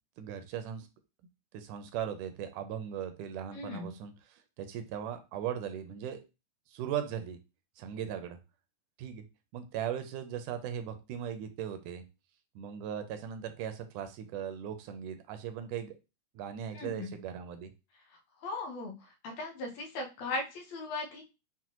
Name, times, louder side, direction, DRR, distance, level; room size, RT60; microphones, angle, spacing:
voice 1, 0.2-0.9 1.5-6.2 6.7-7.4 7.8-8.4 9.0-9.2 9.5-12.0 12.6-15.9 16.4-17.7, right 9 dB, 85° right, 8 dB, 2.1 m, -38 dB
voice 2, 3.5-4.0 16.7-17.2 18.4-18.9 19.2-21.2, left 2 dB, 70° left, 2 dB, 1.8 m, -38 dB
6.0 x 2.1 x 2.9 m, 0.28 s
omnidirectional pair, 3.5 m